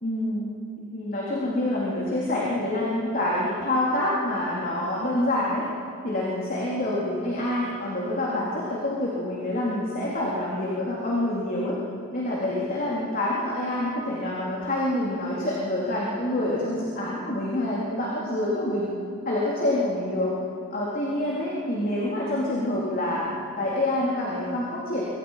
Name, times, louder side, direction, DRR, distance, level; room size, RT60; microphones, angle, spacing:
voice 1, 0.0-0.5 0.9-5.7 6.0-11.8 12.1-18.9 19.3-20.4 20.7-25.0, left 1 dB, 40° left, -5 dB, 3.8 m, -27 dB
27.5 x 25.5 x 5.9 m, 2.5 s
head